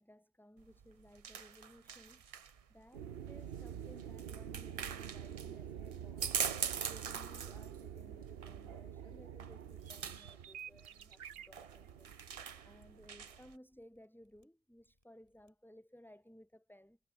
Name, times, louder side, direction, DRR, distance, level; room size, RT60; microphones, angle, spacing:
voice 1, 0.0-2.3 2.7-6.3 6.8-12.1 12.6-17.0, equal, ahead, 3.4 m, -59 dB
sound 1, 0.6-13.6, right 7 dB, 40° right, 0.6 m, -44 dB
sound 2, 2.9-13.5, right 9 dB, 65° right, 1.0 m, -48 dB
Mechanisms, 9.4-15.5 15.8-15.9, left 1 dB, 30° left, 8.2 m, -80 dB
omnidirectional pair, 1.1 m